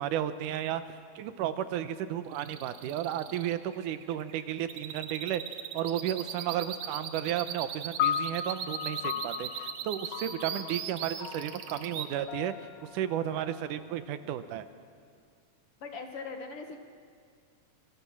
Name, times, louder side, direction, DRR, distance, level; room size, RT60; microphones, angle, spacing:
voice 1, 0.0-12.5 12.9-14.7, right 11 dB, 90° right, 11 dB, 2.4 m, -33 dB
sound 1, 2.3-12.1, right 9 dB, 65° right, 2.2 m, -39 dB
sound 2, 8.0-14.4, left 10 dB, 70° left, 1.8 m, -37 dB
voice 2, 15.8-16.8, left 4 dB, 50° left, 4 dB, 2.1 m, -40 dB
25.5 x 23.0 x 6.1 m, 2.1 s
omnidirectional pair, 3.6 m